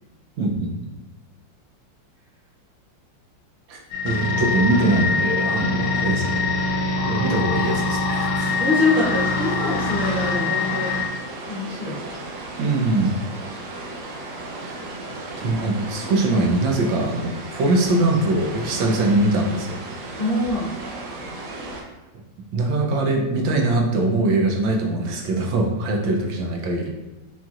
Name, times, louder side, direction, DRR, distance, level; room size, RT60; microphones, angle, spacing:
voice 1, 0.4-0.9 3.7-6.6 7.0-8.5 12.6-13.2 14.6-14.8 15.4-19.8 22.5-26.9, right 2 dB, 90° right, 1 dB, 1.5 m, -22 dB
sound 1, 3.9-11.1, left 3 dB, 75° left, 1.2 m, -23 dB
sound 2, 8.5-21.8, right 2 dB, 70° right, 1.2 m, -35 dB
voice 2, 8.6-10.9 11.5-12.0 20.2-20.7, left 2 dB, 50° left, -9 dB, 0.6 m, -24 dB
4.4 x 4.1 x 2.4 m, 1.0 s
omnidirectional pair, 2.0 m